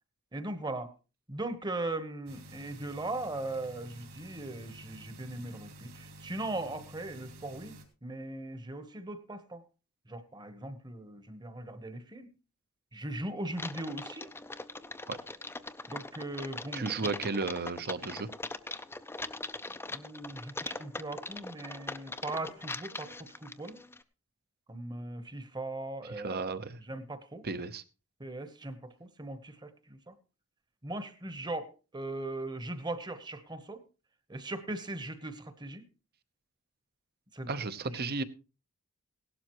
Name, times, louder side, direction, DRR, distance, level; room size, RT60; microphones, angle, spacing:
voice 1, 0.3-0.9 1.3-9.6 10.1-12.3 12.9-14.3 15.9-17.1 19.9-23.8 24.7-26.4 26.8-27.5 28.2-30.2 30.8-33.8 34.3-35.8 37.3-37.5 37.8-38.1, right 2 dB, 20° right, 11 dB, 1.1 m, -39 dB
sound 1, 2.3-7.9, right 1 dB, 65° right, 3.0 m, -51 dB
Typing, 13.5-24.0, left 2 dB, 10° left, 0.6 m, -41 dB
voice 2, 16.7-18.3 26.2-26.8 27.4-27.8 37.5-38.2, right 4 dB, 45° right, 12 dB, 0.9 m, -34 dB
17.0 x 12.0 x 3.1 m, 0.33 s
head